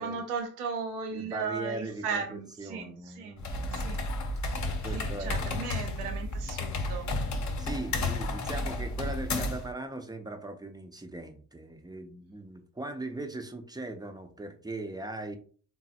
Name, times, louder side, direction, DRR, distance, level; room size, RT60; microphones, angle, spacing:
voice 1, 0.0-3.4 3.7-4.0 4.9-7.1, right 5 dB, 80° right, 5 dB, 0.7 m, -36 dB
voice 2, 1.1-4.1 4.6-5.7 7.6-15.4, right 2 dB, 10° right, 6 dB, 0.6 m, -40 dB
sound 1, 3.4-9.7, left 2 dB, 40° left, 0.8 m, -32 dB
3.8 x 2.1 x 2.7 m, 0.43 s
hypercardioid pair, 45°, 44 cm